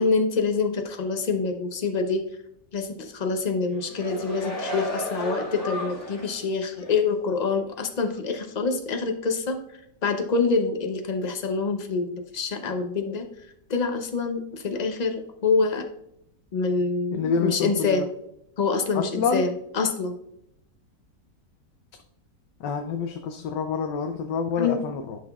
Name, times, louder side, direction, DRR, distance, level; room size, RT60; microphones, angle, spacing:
voice 1, 0.0-2.2 2.7-9.6 10.0-13.3 13.7-15.8 16.5-18.1 18.6-20.1 24.6-24.8, left 4 dB, 55° left, 5 dB, 0.4 m, -26 dB
sound 1, 3.7-6.4 6.8-6.9, left 1 dB, 30° left, 2.5 m, -33 dB
voice 2, 17.1-18.0 18.9-19.4 22.6-25.2, left 5 dB, 85° left, 5 dB, 1.3 m, -27 dB
11.0 x 5.9 x 2.3 m, 0.78 s
omnidirectional pair, 1.8 m